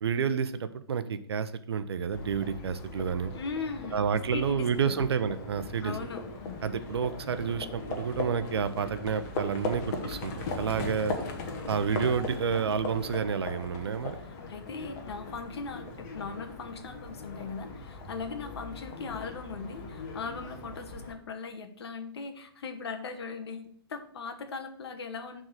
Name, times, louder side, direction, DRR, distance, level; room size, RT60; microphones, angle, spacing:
voice 1, 0.0-3.3 3.9-6.0 6.6-11.2 11.7-14.2, right 6 dB, 85° right, 12 dB, 0.6 m, -30 dB
Livestock farm animals working animals, 2.1-21.1, left 3 dB, 45° left, 1.4 m, -39 dB
voice 2, 3.3-5.0 5.8-6.2 14.2-25.4, left 4 dB, 80° left, 6 dB, 1.1 m, -39 dB
6.3 x 3.8 x 6.2 m, 0.64 s
hypercardioid pair, 135°, 13 cm